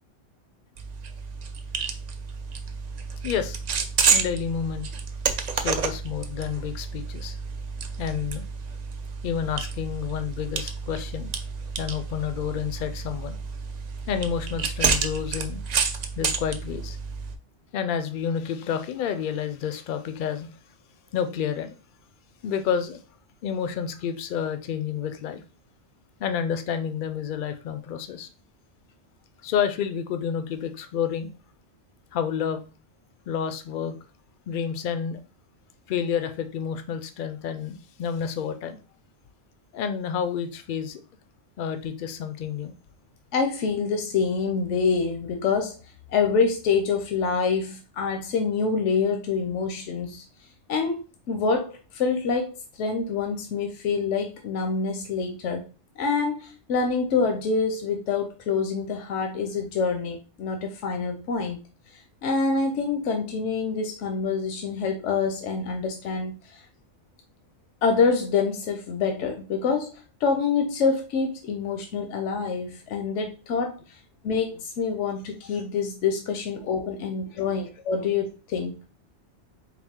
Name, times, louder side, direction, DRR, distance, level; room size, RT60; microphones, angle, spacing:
sound 1, 0.8-17.4, right 5 dB, 65° right, 0.4 m, -30 dB
voice 1, 3.2-3.6 4.1-4.9 5.5-7.4 8.0-8.4 9.2-11.3 11.8-13.4 14.1-15.6 16.2-17.0 17.7-20.5 21.1-21.8 22.4-23.0 23.4-25.4 26.2-28.3 29.4-31.3 32.1-32.6 33.3-34.0 34.5-35.2 35.9-38.8 39.7-41.0 41.6-42.7 77.6-77.7 78.0-78.1, left 8 dB, 60° left, 0.6 m, -29 dB
voice 2, 43.3-45.8 46.1-50.2 50.7-51.0 51.3-55.7 56.0-61.6 62.2-66.6 67.8-74.0 74.2-78.8, left 5 dB, 80° left, 1.0 m, -26 dB
4.2 x 2.4 x 3.5 m
omnidirectional pair, 1.2 m